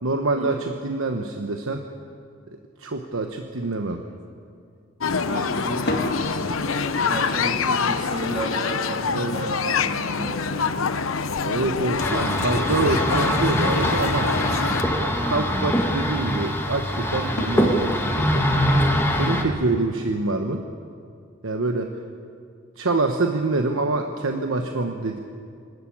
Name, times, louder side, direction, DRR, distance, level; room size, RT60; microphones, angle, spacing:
voice 1, 0.0-1.8 2.8-4.0 9.1-9.3 11.4-14.3 15.0-18.5 19.1-20.6 21.4-21.9 22.8-25.2, right 2 dB, 90° right, 4 dB, 1.1 m, -26 dB
sound 1, 3.1-3.3 3.6-4.2 5.7-10.5 12.2-12.3 12.7-13.6 17.4-19.1, left 1 dB, 55° left, 2.1 m, -36 dB
sound 2, 5.0-14.8, left 5 dB, 90° left, 0.8 m, -26 dB
voice 2, 5.2-10.7, right 1 dB, 35° right, -2 dB, 3.0 m, -33 dB
sound 3, 12.0-19.4, equal, 10° left, 1.8 m, -23 dB
24.5 x 13.5 x 8.7 m, 2.3 s
head